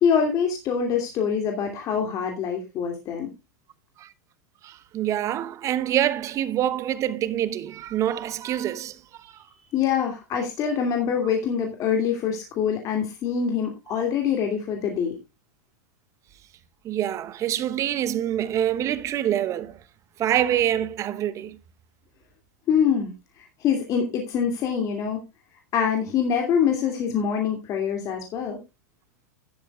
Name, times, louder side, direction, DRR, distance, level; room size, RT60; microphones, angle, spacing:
voice 1, 0.0-3.3 9.7-15.2 22.7-23.1 23.6-25.2 25.7-28.6, left 7 dB, 40° left, 2.6 m, -24 dB
voice 2, 4.6-9.4 11.2-11.3 16.8-19.8 20.2-21.6, right 11 dB, 35° right, 1.0 m, -26 dB
12.5 x 11.5 x 2.4 m
hypercardioid pair, 100°, 9 cm